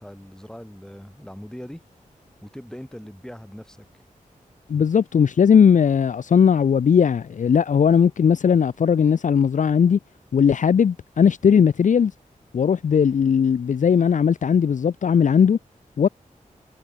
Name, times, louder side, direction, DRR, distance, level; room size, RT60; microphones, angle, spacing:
voice 1, 0.0-1.8 2.4-3.8, equal, 5° left, 5.6 m, -40 dB
voice 2, 4.7-10.0 10.3-12.1 12.5-15.6 16.0-16.1, left 7 dB, 65° left, 0.5 m, -18 dB
wide cardioid pair, 115°, 14 cm